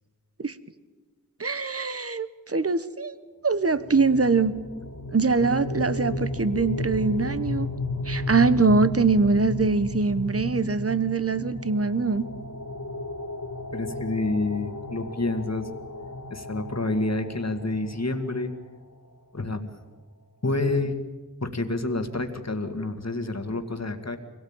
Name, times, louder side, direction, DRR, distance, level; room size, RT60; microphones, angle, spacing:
voice 1, 1.4-3.2 3.4-4.5 5.1-7.7 8.0-12.2, right 4 dB, 45° right, 14 dB, 1.1 m, -23 dB
sound 1, 3.8-18.6, left 2 dB, 75° left, 2.7 m, -34 dB
voice 2, 13.7-15.7 16.3-18.5 19.3-19.7 20.4-20.9 21.4-24.2, left 2 dB, 55° left, 7 dB, 2.0 m, -28 dB
24.5 x 17.5 x 8.8 m, 1.4 s
wide cardioid pair, 50°, 32 cm